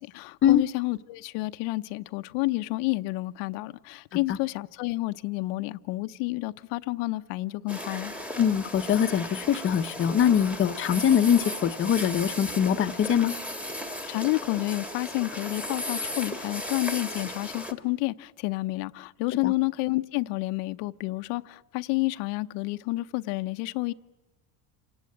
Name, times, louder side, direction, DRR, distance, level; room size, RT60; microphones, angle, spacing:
voice 1, 0.0-8.1 14.1-23.9, left 21 dB, 85° left, 0.7 m, -30 dB
sound 1, 7.7-17.7, left 1 dB, 5° right, 1.4 m, -36 dB
voice 2, 8.4-13.3 19.4-19.5, left 9 dB, 30° left, 0.7 m, -23 dB
27.5 x 18.0 x 8.6 m
cardioid pair, 145°, 43 cm